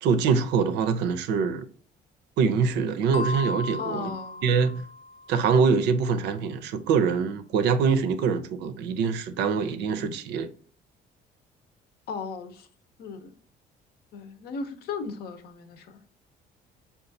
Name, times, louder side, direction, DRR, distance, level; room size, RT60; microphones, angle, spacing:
voice 1, 0.0-1.6 2.4-4.1 4.4-4.8 5.3-10.5, right 5 dB, 85° right, 0.5 m, -24 dB
sound 1, 3.1-5.6, left 2 dB, 35° left, 0.4 m, -36 dB
voice 2, 3.8-4.6 10.0-10.1 12.1-12.7 13.0-13.3 14.1-16.0, left 5 dB, 70° left, 0.7 m, -36 dB
5.2 x 2.4 x 2.6 m
cardioid pair, 110°, 17 cm